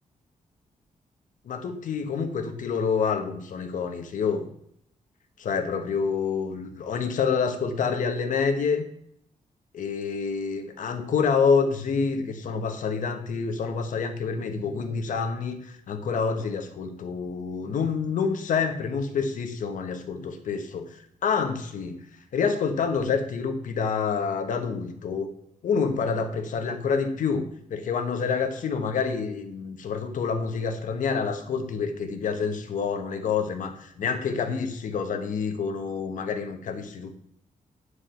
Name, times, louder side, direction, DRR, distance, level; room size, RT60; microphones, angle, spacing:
voice 1, 1.5-4.5 5.4-8.9 9.7-15.6 15.9-20.9 21.2-22.0 22.3-25.3 25.6-37.2, left 5 dB, 70° left, 7 dB, 1.2 m, -27 dB
9.9 x 4.9 x 5.8 m, 0.71 s
wide cardioid pair, 165°, 14 cm